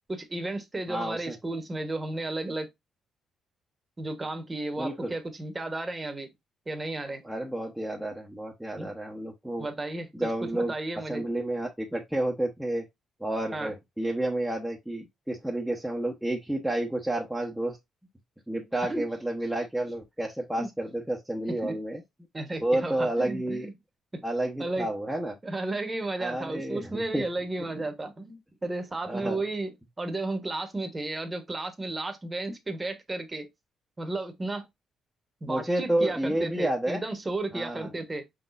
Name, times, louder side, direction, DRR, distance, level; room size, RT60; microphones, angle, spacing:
voice 1, 0.1-2.7 4.0-6.3 6.7-7.2 8.8-8.9 9.6-11.2 13.5-13.7 18.8-19.1 20.6-20.7 21.4-21.8 22.3-23.7 24.1-24.2 24.6-24.9 25.4-33.5 34.0-34.7 35.4-38.3, right 2 dB, 20° right, 1.2 m, -33 dB
voice 2, 0.9-1.4 4.8-5.1 7.2-9.7 10.1-10.7 11.1-12.9 13.2-17.8 18.5-22.0 22.6-23.7 24.2-25.3 26.2-27.2 29.1-29.4 35.5-37.0 37.5-37.9, right 1 dB, 5° right, 1.0 m, -30 dB
5.0 x 4.0 x 2.5 m
cardioid pair, 90°, 0 cm